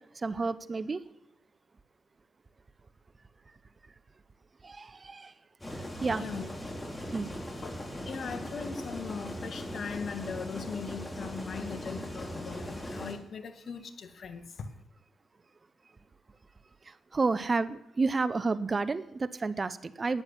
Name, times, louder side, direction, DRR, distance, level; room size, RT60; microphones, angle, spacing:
voice 1, 0.2-1.0 4.6-5.3 6.0-6.2 7.1-7.3 17.1-20.2, right 3 dB, 35° right, 0.9 m, -30 dB
sound 1, 5.6-13.1, equal, 20° left, 4.5 m, -39 dB
voice 2, 6.0-6.5 7.6-7.7 8.1-14.4, left 6 dB, 60° left, 1.7 m, -39 dB
12.5 x 9.8 x 8.4 m
supercardioid pair, 50°, 0 cm